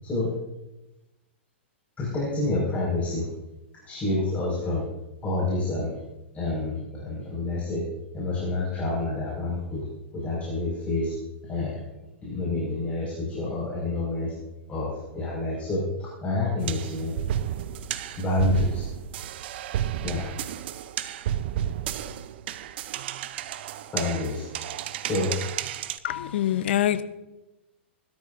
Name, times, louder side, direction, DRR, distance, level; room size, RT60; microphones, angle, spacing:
voice 1, 2.0-3.3 3.9-4.8 5.2-5.9 6.3-7.8 8.1-9.9 10.1-11.1 11.5-11.8 12.2-14.3 14.7-17.1 18.2-18.9 20.0-20.3 21.0-21.1 23.9-24.5 25.1-25.3, left 2 dB, 20° left, -5 dB, 5.6 m, -28 dB
sound 1, 16.6-26.0, right 11 dB, 60° right, 0.7 m, -32 dB
voice 2, 26.0-27.0, left 12 dB, 65° left, 12 dB, 1.0 m, -24 dB
20.5 x 13.0 x 2.7 m, 0.99 s
hypercardioid pair, 110°, 6 cm